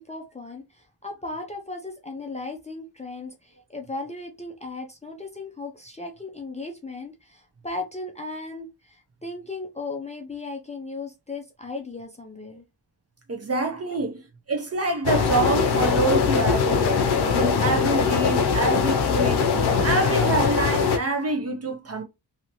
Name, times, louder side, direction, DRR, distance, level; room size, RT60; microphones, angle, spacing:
voice 1, 0.0-12.6 13.9-14.0, left 3 dB, 15° left, 0.5 m, -36 dB
voice 2, 13.3-14.2 14.5-17.0 17.3-19.4 19.8-22.0, right 3 dB, 35° right, 0.7 m, -26 dB
sound 1, 15.0-21.0, left 6 dB, 65° left, 0.7 m, -21 dB
2.8 x 2.8 x 2.9 m
wide cardioid pair, 135°, 42 cm